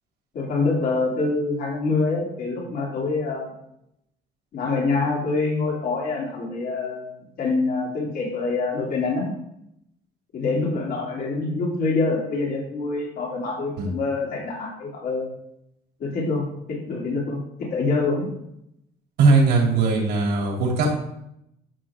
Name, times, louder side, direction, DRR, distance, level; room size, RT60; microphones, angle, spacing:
voice 1, 0.3-3.5 4.5-9.3 10.3-15.3 16.0-16.4 16.9-17.4 17.7-18.3, left 3 dB, 60° left, -3 dB, 3.2 m, -25 dB
voice 2, 19.2-21.0, right 3 dB, 80° right, -1 dB, 3.4 m, -19 dB
12.5 x 6.0 x 3.7 m, 0.80 s
cardioid pair, 110°, 17 cm